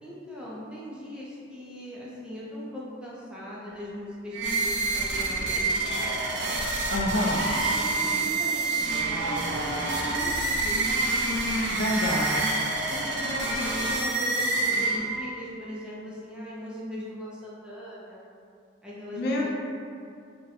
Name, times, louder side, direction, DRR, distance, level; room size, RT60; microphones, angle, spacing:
voice 1, 0.0-6.3 7.6-10.8 12.9-18.2 18.8-19.5, equal, 5° right, -7 dB, 0.4 m, -39 dB
sound 1, 4.3-15.4, right 2 dB, 65° right, 0.4 m, -27 dB
voice 2, 6.9-7.5 11.7-12.7 19.1-19.5, left 1 dB, 55° left, -2 dB, 0.4 m, -27 dB
2.6 x 2.2 x 4.0 m, 2.4 s
head